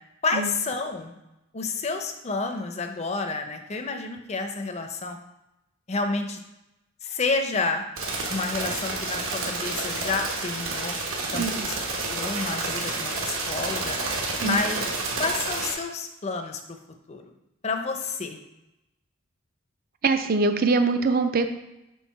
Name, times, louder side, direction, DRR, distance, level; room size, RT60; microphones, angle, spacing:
voice 1, 0.2-1.2 1.5-5.2 5.9-6.4 7.0-7.8 8.3-10.9 11.3-11.8 12.1-14.0 14.4-14.8 15.2-16.8 17.1-17.2 17.6-18.4, left 3 dB, 30° left, 5 dB, 0.5 m, -29 dB
sound 1, 8.0-15.7, right 3 dB, 70° right, 1.1 m, -30 dB
voice 2, 11.3-11.7 14.4-14.6 20.0-21.5, right 3 dB, 45° right, 8 dB, 0.4 m, -23 dB
4.6 x 3.8 x 5.4 m, 0.91 s
head